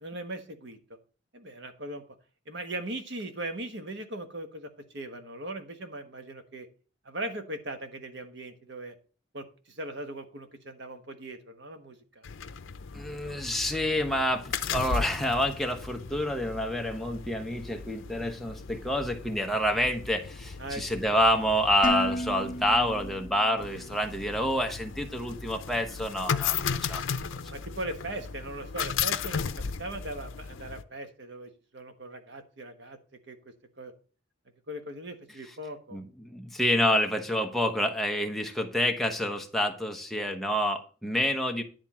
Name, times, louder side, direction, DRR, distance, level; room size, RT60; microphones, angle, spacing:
voice 1, 0.0-0.8 1.3-2.0 2.5-6.7 7.0-8.9 9.3-12.3 20.6-20.8 27.5-33.0 33.3-33.4 33.8-33.9 34.7-36.0, right 1 dB, 60° right, 7 dB, 1.3 m, -39 dB
sound 1, 12.2-30.8, left 6 dB, 90° left, 0.6 m, -36 dB
voice 2, 12.9-27.1 35.9-41.6, equal, ahead, 3 dB, 1.0 m, -28 dB
Dishes pots and pans, 21.8-23.9, equal, 40° left, 1.4 m, -33 dB
10.5 x 3.6 x 7.3 m, 0.37 s
head